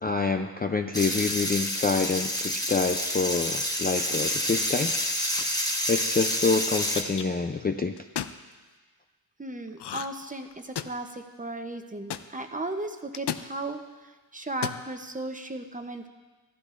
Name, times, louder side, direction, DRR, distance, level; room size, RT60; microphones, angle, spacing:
voice 1, 0.0-4.9 5.4-5.6 5.9-7.9, left 4 dB, 25° left, 5 dB, 0.4 m, -27 dB
sound 1, 0.9-7.0, left 1 dB, 10° left, 1.1 m, -28 dB
sound 2, 5.4-5.7 6.5-7.2 8.0-8.4 9.8-10.2 10.5-11.1 12.1-12.2 13.1-13.5 14.5-14.8, left 10 dB, 85° left, 0.5 m, -34 dB
voice 2, 9.4-13.8 14.3-16.1, right 2 dB, 20° right, 6 dB, 0.7 m, -35 dB
15.5 x 13.0 x 2.5 m, 1.3 s
wide cardioid pair, 130°, 39 cm